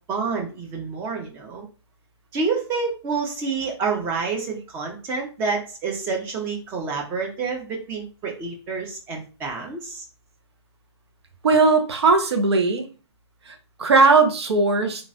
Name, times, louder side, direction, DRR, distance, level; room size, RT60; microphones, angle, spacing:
voice 1, 0.1-1.7 2.3-10.0, right 4 dB, 15° right, 1 dB, 0.6 m, -28 dB
voice 2, 11.4-12.9 13.5-15.1, right 4 dB, 70° right, 6 dB, 0.8 m, -18 dB
3.0 x 2.4 x 2.6 m, 0.35 s
hypercardioid pair, 150°, 14 cm